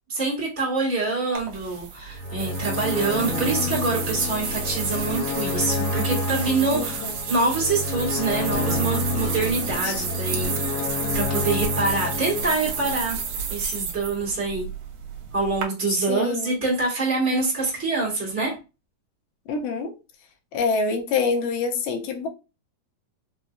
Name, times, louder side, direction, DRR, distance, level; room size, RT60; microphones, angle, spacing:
voice 1, 0.1-10.6 11.1-13.2 13.5-14.7 15.3-18.6, right 3 dB, 15° right, -7 dB, 0.4 m, -25 dB
sound 1, 1.4-15.6, right 6 dB, 85° right, 1.5 m, -32 dB
sound 2, 2.1-13.4, left 3 dB, 60° left, 1.7 m, -29 dB
voice 2, 6.7-7.1 9.8-10.6 16.1-16.6 19.5-19.9 20.5-22.3, left 4 dB, 80° left, 3 dB, 2.2 m, -26 dB
5.5 x 2.0 x 2.5 m, 0.29 s
omnidirectional pair, 4.0 m